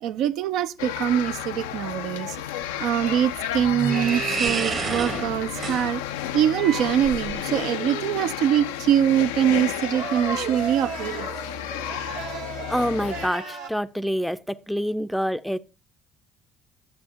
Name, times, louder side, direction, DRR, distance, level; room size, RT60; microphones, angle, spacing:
voice 1, 0.0-2.4 2.8-6.0 6.3-11.3, right 10 dB, 65° right, 0.3 m, -23 dB
sound 1, 0.8-13.3, left 11 dB, 80° left, 0.4 m, -32 dB
sound 2, 2.6-7.6, right 5 dB, 50° right, 1.1 m, -31 dB
sound 3, 7.4-8.2 9.5-13.7, right 4 dB, 90° right, 1.7 m, -35 dB
voice 2, 12.7-15.6, equal, ahead, 0.4 m, -26 dB
10.5 x 7.5 x 2.8 m
hypercardioid pair, 55°, 0 cm